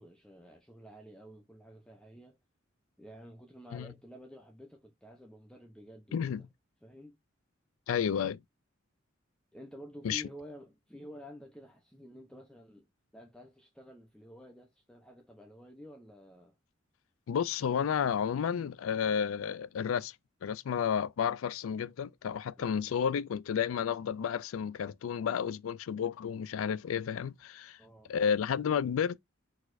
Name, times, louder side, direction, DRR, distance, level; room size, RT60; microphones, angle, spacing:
voice 1, 0.0-2.4 3.0-6.5 6.8-7.2 9.5-12.9 13.1-16.6 22.6-23.0 27.8-28.3, equal, 5° left, 0.6 m, -51 dB
voice 2, 6.1-6.4 7.9-8.4 10.0-10.2 17.3-20.1 20.4-27.8 28.1-29.2, left 7 dB, 90° left, 0.4 m, -31 dB
4.6 x 4.1 x 2.5 m
head